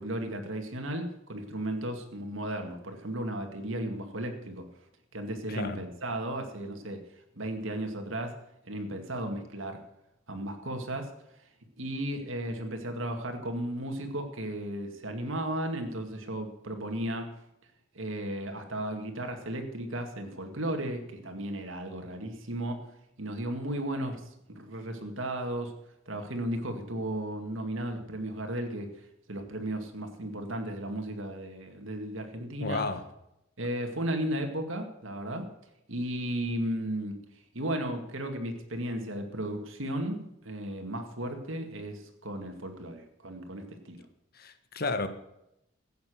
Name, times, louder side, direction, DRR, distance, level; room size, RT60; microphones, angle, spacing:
voice 1, 0.0-4.7 5.1-7.0 7.4-8.4 8.7-9.8 10.3-11.1 11.8-17.3 17.9-22.8 23.2-24.2 24.5-25.7 26.1-28.9 29.3-32.8 33.6-35.5 35.9-37.2 37.5-44.1, right 1 dB, 70° right, 2.1 m, -35 dB
voice 2, 5.5-5.8 32.6-33.0 44.3-45.1, left 3 dB, 45° left, 1.3 m, -32 dB
15.5 x 9.3 x 6.3 m
head